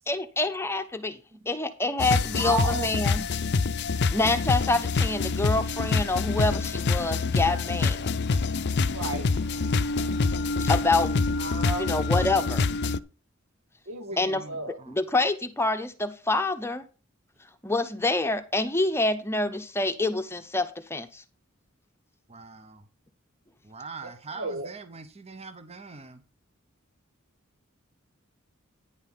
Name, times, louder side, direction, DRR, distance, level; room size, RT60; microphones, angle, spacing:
voice 1, 0.1-1.2 1.5-3.2 4.1-8.1 10.6-12.7 14.2-14.4 14.9-16.8 17.6-21.2, left 2 dB, 10° left, 0.9 m, -27 dB
sound 1, 2.0-13.0, left 4 dB, 55° left, 0.5 m, -26 dB
voice 2, 2.4-2.9 8.9-9.3 11.4-11.9 13.9-14.2 14.5-14.8 24.3-24.7, right 2 dB, 80° right, 1.8 m, -32 dB
voice 3, 14.1-15.0 22.3-22.9 23.6-26.2, right 4 dB, 30° right, 0.9 m, -43 dB
9.9 x 5.6 x 5.7 m
head